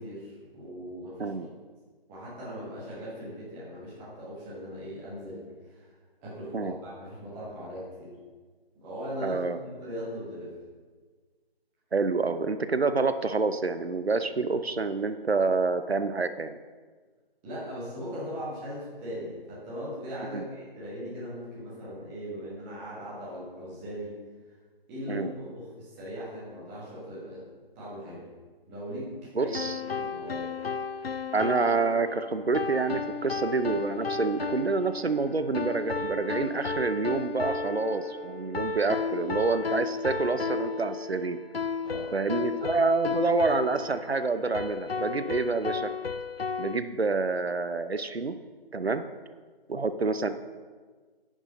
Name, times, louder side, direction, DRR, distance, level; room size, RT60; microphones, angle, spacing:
voice 1, 0.0-1.5 2.1-5.4 5.6-5.9 6.2-8.2 8.7-9.4 9.8-10.5 17.4-24.2 24.4-24.5 24.9-27.4 27.7-28.2 28.7-29.1 29.4-29.5 29.8-30.5 41.8-42.1, equal, 5° right, -8 dB, 1.2 m, -39 dB
voice 2, 9.2-9.6 11.9-16.6 20.3-20.4 25.1-25.3 29.4-29.8 31.3-41.4 42.1-45.9 46.6-48.4 48.7-49.0 49.7-50.3, right 3 dB, 90° right, 11 dB, 0.7 m, -27 dB
sound 1, 29.5-46.8, left 5 dB, 75° left, 0.6 m, -34 dB
10.0 x 6.3 x 5.1 m, 1.4 s
figure-of-eight pair, 155°, 30 cm